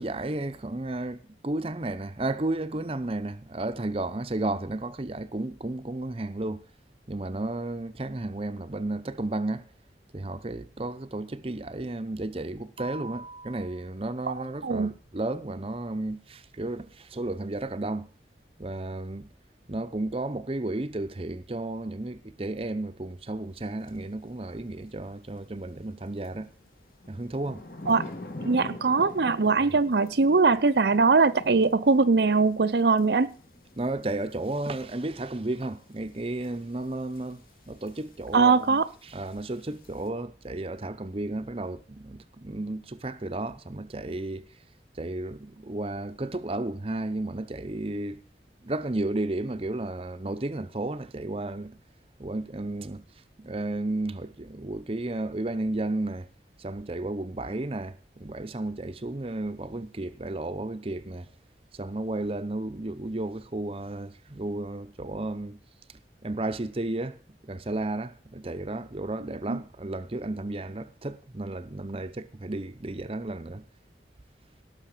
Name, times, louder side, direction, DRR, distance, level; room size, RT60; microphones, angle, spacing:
voice 1, 0.0-6.6 7.1-9.7 10.1-18.1 18.6-19.3 19.7-26.5 27.1-27.6 33.8-37.4 37.7-44.5 45.0-48.2 48.6-51.8 52.2-53.0 53.4-56.3 56.6-61.3 61.7-65.6 66.2-67.2 67.4-73.6, right 2 dB, 30° right, 0.8 m, -33 dB
sound 1, 23.8-24.0 26.2-40.1, left 2 dB, 55° left, 1.9 m, -46 dB
voice 2, 28.4-33.3 38.3-38.8 69.5-69.6, right 4 dB, 70° right, 0.6 m, -21 dB
17.5 x 6.5 x 6.6 m
head